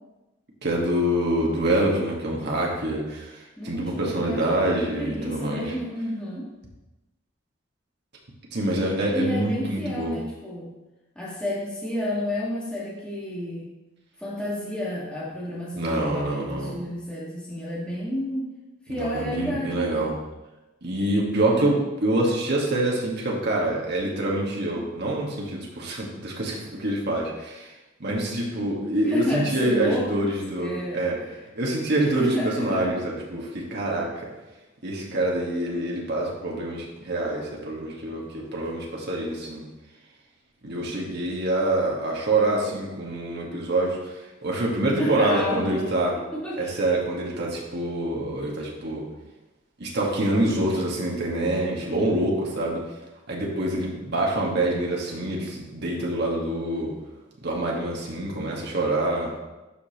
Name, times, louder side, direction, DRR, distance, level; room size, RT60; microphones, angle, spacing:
voice 1, 0.6-5.6 8.5-10.1 15.7-16.7 18.9-20.1 20.8-27.7 28.0-31.2 31.5-34.3 34.8-39.6 40.6-46.1 46.6-49.0 49.8-52.8 53.3-56.9 57.4-59.3, right 1 dB, 60° right, -2 dB, 1.6 m, -26 dB
voice 2, 3.6-6.5 9.1-10.7 11.1-13.7 14.2-18.5 18.9-20.1 29.1-31.3 32.1-32.8 45.0-46.1 46.4-46.7, left 1 dB, 5° left, -7 dB, 1.7 m, -31 dB
12.0 x 5.2 x 3.0 m, 1.1 s
head